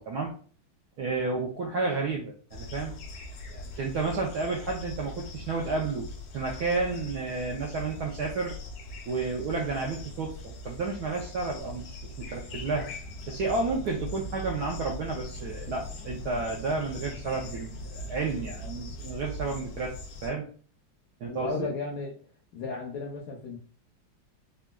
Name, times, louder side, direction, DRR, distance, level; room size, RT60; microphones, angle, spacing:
voice 1, 1.0-2.9 3.5-6.1 6.3-8.5 9.1-12.9 13.3-19.9 20.2-20.5 21.2-21.7, right 3 dB, 75° right, -1 dB, 0.9 m, -31 dB
sound 1, 2.5-20.3, left 1 dB, 85° left, 1.5 m, -41 dB
voice 2, 21.2-22.1 22.5-23.6, left 4 dB, 70° left, -1 dB, 0.9 m, -34 dB
3.8 x 2.2 x 2.2 m, 0.42 s
omnidirectional pair, 2.2 m